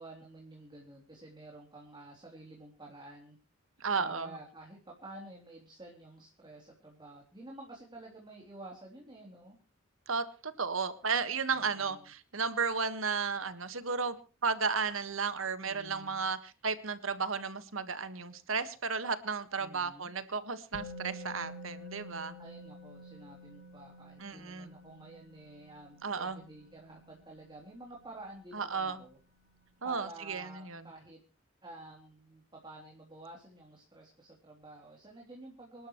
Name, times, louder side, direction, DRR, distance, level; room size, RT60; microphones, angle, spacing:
voice 1, 0.0-3.4 4.0-9.6 11.5-12.1 15.6-16.2 19.6-20.1 22.4-29.2 29.8-31.2 31.6-35.9, right 2 dB, 25° right, 3.3 m, -50 dB
voice 2, 3.8-4.4 10.1-14.1 14.4-22.4 24.2-24.7 26.0-26.4 28.5-29.0 29.8-30.8, right 5 dB, 90° right, 1.6 m, -34 dB
Musical instrument, 20.7-28.6 28.9-29.1, left 1 dB, 85° left, 2.6 m, -50 dB
27.0 x 12.0 x 3.1 m
head